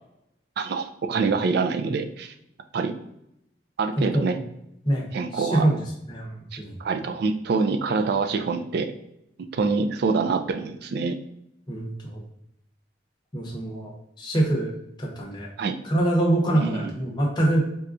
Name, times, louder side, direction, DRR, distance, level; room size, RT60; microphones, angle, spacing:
voice 1, 0.6-2.3 2.7-3.0 3.8-4.4 5.1-5.7 6.5-8.9 9.5-11.2 15.6-15.8 16.5-16.9, right 4 dB, 60° right, 8 dB, 0.3 m, -25 dB
voice 2, 4.0-4.4 4.8-5.0 5.3-5.8 6.1-6.7 11.7-12.2 13.3-14.7 15.0-15.5 15.8-17.7, right 1 dB, 25° left, -2 dB, 0.8 m, -24 dB
4.2 x 2.3 x 2.5 m, 0.79 s
head